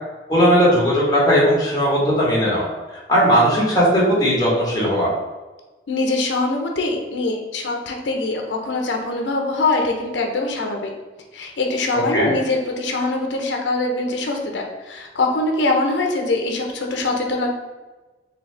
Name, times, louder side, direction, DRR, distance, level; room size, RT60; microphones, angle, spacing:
voice 1, 0.3-5.1 11.9-12.3, equal, 20° left, -6 dB, 1.3 m, -18 dB
voice 2, 5.9-10.9 11.3-17.5, left 2 dB, 80° left, 2 dB, 0.6 m, -23 dB
4.1 x 2.8 x 3.3 m, 1.2 s
head